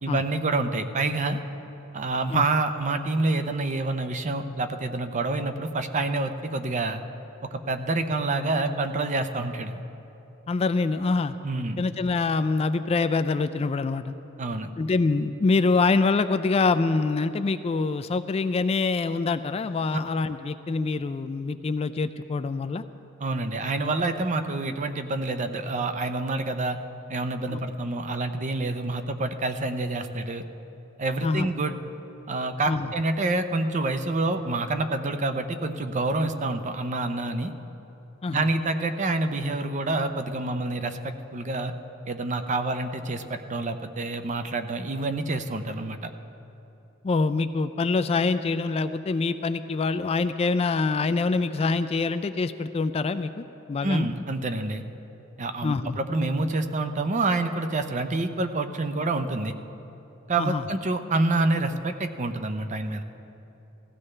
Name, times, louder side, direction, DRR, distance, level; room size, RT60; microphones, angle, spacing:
voice 1, 0.0-1.4 1.9-7.0 7.7-9.8 11.4-11.9 14.4-14.7 23.2-26.8 27.1-30.4 31.0-31.8 32.3-37.5 38.3-41.7 42.1-46.1 53.8-54.8 55.4-59.5 60.3-63.0, right 2 dB, 35° right, 8 dB, 0.6 m, -27 dB
voice 2, 10.5-11.4 11.8-14.1 14.8-22.8 27.5-27.6 31.2-31.5 32.7-32.9 38.2-38.5 47.0-54.1 55.6-56.0 60.4-60.6, left 3 dB, 30° left, 11 dB, 0.3 m, -25 dB
18.0 x 15.0 x 3.3 m, 3.0 s
head